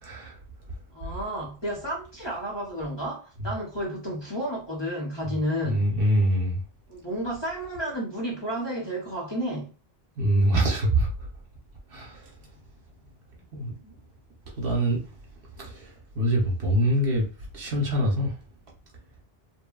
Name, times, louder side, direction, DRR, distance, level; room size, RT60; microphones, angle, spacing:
voice 1, 0.0-0.4 1.1-1.2 5.6-6.6 10.2-11.3 11.9-12.3 13.5-13.9 14.6-15.1 15.6-17.3 17.5-18.4, right 1 dB, 65° right, 1.1 m, -25 dB
voice 2, 0.9-5.9 6.9-9.7, equal, 30° left, 0.8 m, -31 dB
2.9 x 2.3 x 2.3 m
omnidirectional pair, 1.0 m